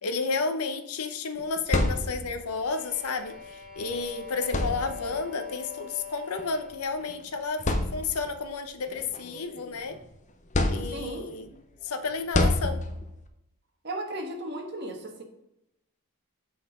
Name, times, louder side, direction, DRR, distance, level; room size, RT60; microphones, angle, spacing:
voice 1, 0.0-7.6 7.9-10.0 10.7-11.5 11.8-12.8, left 4 dB, 85° left, 8 dB, 0.8 m, -31 dB
sound 1, 1.4-2.5 3.8-3.9 4.4-5.3 6.4-6.6 7.1-7.2 7.6-8.4 8.9-10.0 10.5-11.3 12.3-13.2, left 2 dB, 35° left, 0.6 m, -28 dB
sound 2, 2.2-7.0, left 7 dB, ahead, 2.0 m, -43 dB
voice 2, 10.9-11.3 13.8-15.2, right 1 dB, 50° right, 2 dB, 1.3 m, -35 dB
7.8 x 4.2 x 4.9 m, 0.85 s
head